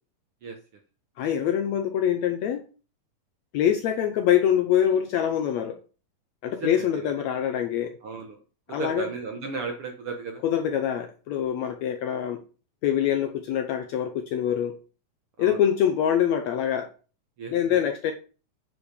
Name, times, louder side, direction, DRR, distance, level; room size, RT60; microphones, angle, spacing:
voice 1, 1.2-2.6 3.5-5.8 6.4-8.0 8.7-9.1 10.4-12.4 12.8-14.8 15.4-16.9 17.5-18.1, left 9 dB, 75° left, 7 dB, 1.7 m, -24 dB
voice 2, 6.5-7.1 8.0-8.4 8.8-10.4 15.4-15.7 17.4-17.8, right 4 dB, 60° right, 3 dB, 1.5 m, -35 dB
9.9 x 5.1 x 5.2 m, 0.36 s
omnidirectional pair, 3.8 m